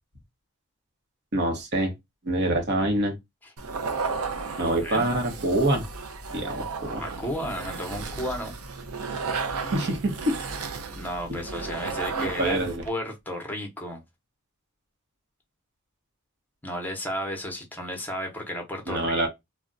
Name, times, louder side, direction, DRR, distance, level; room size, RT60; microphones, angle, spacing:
voice 1, 1.3-1.9 2.2-3.1 4.6-5.8 6.3-7.0 9.7-10.4 11.3-11.4 12.2-12.8 18.9-19.3, right 1 dB, 50° right, 0.9 m, -25 dB
sound 1, 3.6-12.9, right 4 dB, 75° right, 0.5 m, -34 dB
voice 2, 4.6-5.0 7.0-8.5 10.9-14.0 16.6-19.3, equal, 10° left, 0.7 m, -33 dB
2.3 x 2.1 x 3.8 m
head